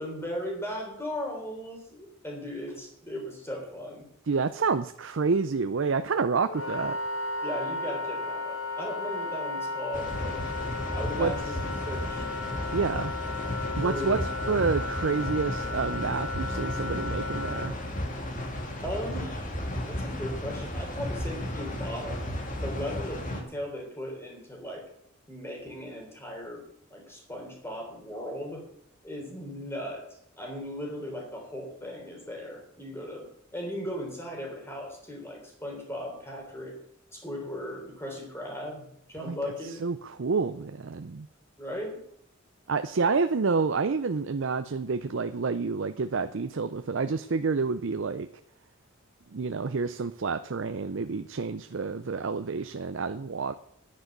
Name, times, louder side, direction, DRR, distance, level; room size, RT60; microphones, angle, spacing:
voice 1, 0.0-4.1 7.4-10.4 10.9-12.2 13.6-14.7 18.8-19.5 19.9-22.3 22.6-24.8 25.3-26.6 26.9-28.6 29.0-30.0 30.4-36.8 37.1-39.8 41.6-42.0, equal, 10° left, 0 dB, 3.7 m, -37 dB
voice 2, 4.3-7.0 11.2-11.3 12.7-13.1 13.8-14.2 14.5-17.8 39.3-39.4 39.8-41.3 42.7-48.3 49.3-53.5, right 4 dB, 60° right, 10 dB, 0.5 m, -28 dB
Wind instrument woodwind instrument, 6.5-17.7, left 3 dB, 75° left, 1.6 m, -34 dB
sound 1, 9.9-23.4, left 1 dB, 40° left, 2.0 m, -34 dB
10.0 x 9.7 x 6.6 m, 0.70 s
head